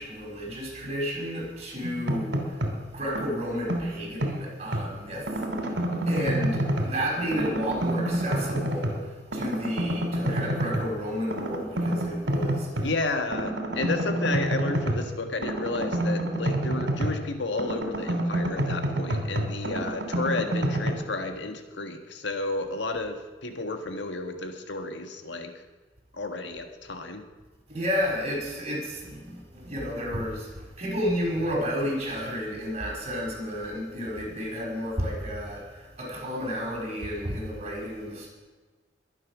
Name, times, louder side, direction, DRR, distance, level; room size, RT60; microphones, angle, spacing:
voice 1, 0.0-2.6 2.9-5.8 6.1-12.9 27.7-30.5 30.8-38.3, equal, 35° right, -2 dB, 5.7 m, -31 dB
sound 1, 1.8-2.8 3.1-4.9 5.3-7.0 7.3-9.1 9.3-10.9 11.3-12.9 13.3-17.3 17.6-20.9, right 1 dB, 80° right, 2.8 m, -28 dB
voice 2, 12.8-25.5 26.1-27.2, left 2 dB, 75° left, 6 dB, 1.6 m, -32 dB
22.5 x 9.1 x 6.2 m, 1.4 s
head